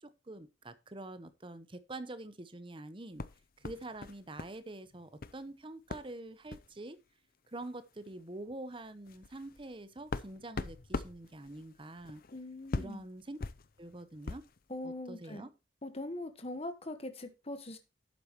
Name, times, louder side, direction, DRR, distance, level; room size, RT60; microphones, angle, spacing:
voice 1, 0.0-3.2 3.6-7.0 7.5-12.2 12.8-13.4 13.8-14.4 14.8-15.5, right 2 dB, 30° right, 13 dB, 0.9 m, -46 dB
sound 1, 3.2-4.6 4.8-5.4 5.9-6.1 6.5-6.7 7.6-7.7 8.0-8.2 8.7-14.6, left 3 dB, 50° left, 0.6 m, -42 dB
voice 2, 12.3-13.0 14.7-15.5 15.8-17.8, left 1 dB, 35° left, 8 dB, 1.3 m, -41 dB
11.5 x 8.6 x 3.0 m, 0.28 s
head